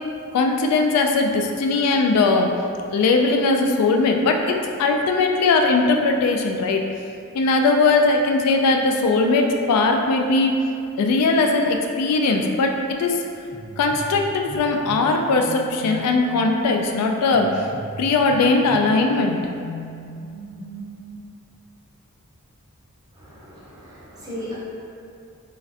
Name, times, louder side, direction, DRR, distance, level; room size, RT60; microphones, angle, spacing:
voice 1, 0.3-2.5 2.9-6.8 7.3-10.5 11.0-12.7 13.0-13.2 13.8-17.7 18.0-19.4, left 3 dB, 90° left, 8 dB, 0.3 m, -19 dB
sound 1, 13.5-21.1, equal, 25° left, 0.5 m, -37 dB
voice 2, 23.1-24.5, left 1 dB, 15° right, -9 dB, 0.6 m, -36 dB
3.1 x 2.5 x 2.4 m, 2.5 s
head